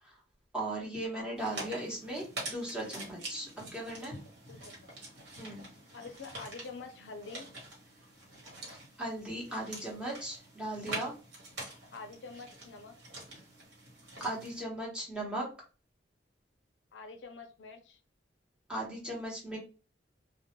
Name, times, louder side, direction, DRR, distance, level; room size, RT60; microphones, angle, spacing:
voice 1, 0.5-4.1 5.4-5.6 9.0-11.1 14.2-15.4 18.7-19.6, right 1 dB, 5° right, -4 dB, 0.8 m, -37 dB
sound 1, 1.4-14.6, right 2 dB, 70° right, 1.1 m, -46 dB
voice 2, 5.9-7.5 11.9-12.9 16.9-18.0, left 4 dB, 85° left, 6 dB, 0.5 m, -46 dB
2.2 x 2.1 x 2.9 m, 0.37 s
head